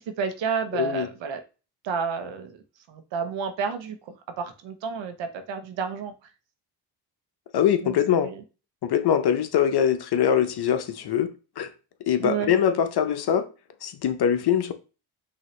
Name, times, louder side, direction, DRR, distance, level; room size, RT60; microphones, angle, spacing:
voice 1, 0.0-1.4 1.8-2.5 2.9-6.1 7.8-8.4 12.2-12.5, right 6 dB, 65° right, 1.0 m, -31 dB
voice 2, 0.7-1.1 7.5-8.3 8.8-11.3 11.6-11.7 12.1-13.5 13.8-14.7, left 9 dB, 55° left, 0.8 m, -23 dB
5.7 x 2.8 x 3.2 m
supercardioid pair, 75°, 48 cm